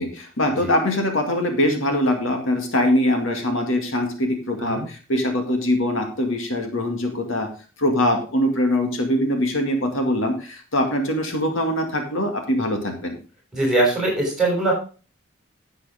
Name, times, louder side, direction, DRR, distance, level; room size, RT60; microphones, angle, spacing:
voice 1, 0.0-7.5 7.8-13.2, left 1 dB, 70° left, 4 dB, 2.2 m, -22 dB
voice 2, 13.5-14.7, right 2 dB, ahead, -2 dB, 6.4 m, -21 dB
11.0 x 8.1 x 3.6 m, 0.35 s
head